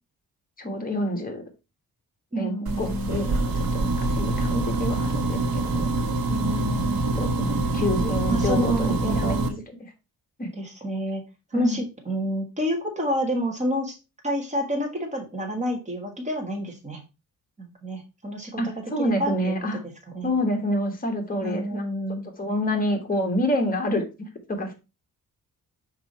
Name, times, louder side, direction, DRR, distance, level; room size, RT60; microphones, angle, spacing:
voice 1, 0.6-1.4 2.4-5.8 7.1-9.4 10.4-10.5 11.5-11.8 18.6-19.8 20.2-21.8 22.4-24.7, left 1 dB, 25° left, 4 dB, 1.5 m, -27 dB
voice 2, 2.3-3.3 6.3-7.1 8.3-9.6 10.6-11.2 11.5-14.0 14.2-17.0 17.6-18.6 19.0-19.5 20.1-20.3 21.4-22.3, equal, 20° right, 2 dB, 1.7 m, -29 dB
sound 1, 2.7-9.5, right 2 dB, 70° right, 1.2 m, -25 dB
5.8 x 4.8 x 4.2 m, 0.29 s
wide cardioid pair, 155°, 36 cm